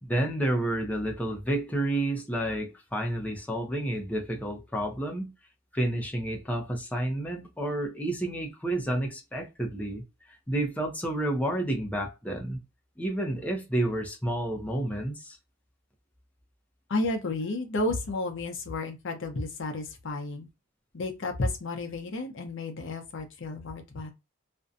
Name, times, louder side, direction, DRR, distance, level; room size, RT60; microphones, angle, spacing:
voice 1, 0.0-5.3 5.7-12.6 13.0-15.4, right 1 dB, 5° left, 0.5 m, -30 dB
voice 2, 16.9-20.5 20.9-24.1, left 2 dB, 65° left, 0.6 m, -32 dB
2.5 x 2.1 x 2.4 m
head